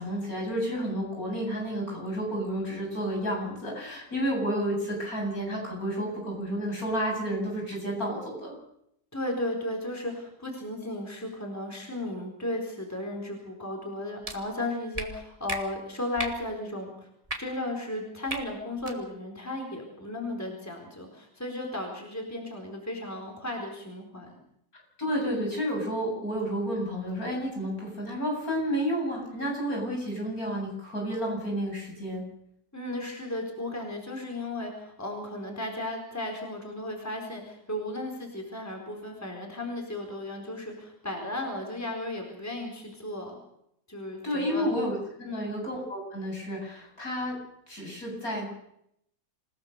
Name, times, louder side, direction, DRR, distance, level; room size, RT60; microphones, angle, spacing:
voice 1, 0.0-8.6 25.0-32.2 44.2-47.4 47.7-48.5, equal, 60° left, 0 dB, 8.7 m, -31 dB
voice 2, 9.1-17.1 17.4-24.4 32.7-43.4 43.9-44.7 45.2-45.5, left 1 dB, 10° left, 1 dB, 4.3 m, -35 dB
sound 1, 14.2-14.4 14.9-15.1 15.5-15.6 16.2-16.4 17.2-17.4 18.3-18.4 18.8-19.0, right 1 dB, 20° right, 2.6 m, -33 dB
27.5 x 17.5 x 6.8 m, 0.74 s
omnidirectional pair, 1.7 m